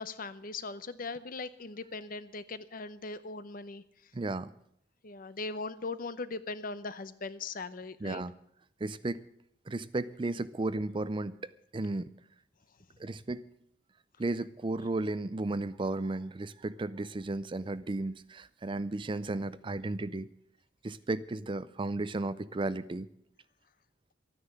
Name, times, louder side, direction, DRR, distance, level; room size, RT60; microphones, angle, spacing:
voice 1, 0.0-3.8 5.0-8.2, left 3 dB, 50° left, 14 dB, 0.8 m, -39 dB
voice 2, 4.1-4.5 8.0-8.3 8.8-9.2 9.7-12.1 13.0-13.4 14.2-20.3 20.8-23.1, right 2 dB, 25° right, 16 dB, 0.5 m, -34 dB
13.0 x 9.8 x 8.3 m, 0.70 s
head